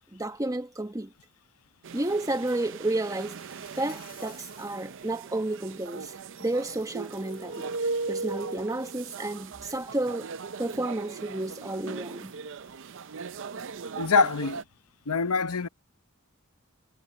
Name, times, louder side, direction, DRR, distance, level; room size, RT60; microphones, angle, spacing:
voice 1, 0.1-1.1 1.9-3.4 3.8-6.1 6.4-7.7 8.1-10.3 10.6-12.3, right 2 dB, 15° right, 1.2 m, -31 dB
sound 1, 1.8-14.6, right 4 dB, 60° right, 0.5 m, -38 dB
Insect, 3.1-4.8 5.3-5.6 6.8-8.7, left 10 dB, 45° left, 7.8 m, -57 dB
voice 2, 14.0-14.6 15.1-15.7, left 4 dB, 80° left, 0.9 m, -24 dB
head